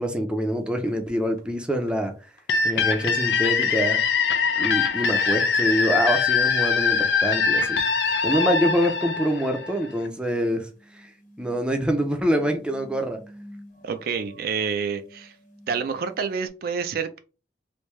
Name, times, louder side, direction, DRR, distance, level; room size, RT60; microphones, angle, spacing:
voice 1, 0.0-2.1 2.6-4.0 4.6-7.8 8.2-11.1 11.4-13.2, equal, 5° right, 0.5 m, -25 dB
sound 1, 0.9-1.0 1.4-1.5 1.9-2.0 2.4-2.5 2.9-3.0 3.4-3.5 3.8-4.0 4.4-4.5 4.9-5.0 5.4-5.5 5.7-5.8 7.8-7.9 8.2-16.5, equal, 50° left, 1.1 m, -50 dB
sound 2, 2.5-10.1, left 5 dB, 80° left, 0.6 m, -23 dB
voice 2, 13.8-15.3 15.7-17.2, right 6 dB, 55° right, 0.4 m, -28 dB
3.4 x 2.7 x 3.1 m
head